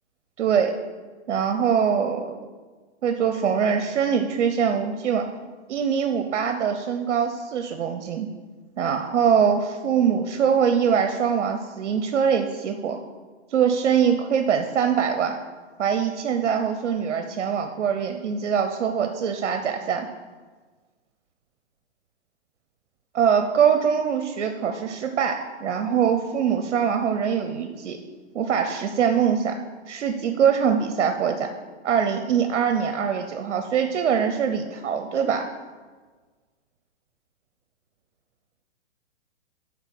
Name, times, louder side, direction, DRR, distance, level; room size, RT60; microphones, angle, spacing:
voice 1, 0.4-0.7 1.3-2.4 3.0-5.3 5.7-8.3 8.8-13.0 13.5-15.4 15.8-20.1 23.1-28.0 28.3-29.6 29.9-31.5 31.8-35.5, right 7 dB, 80° right, 6 dB, 0.8 m, -23 dB
10.5 x 3.8 x 6.0 m, 1.4 s
hypercardioid pair, 145°, 35 cm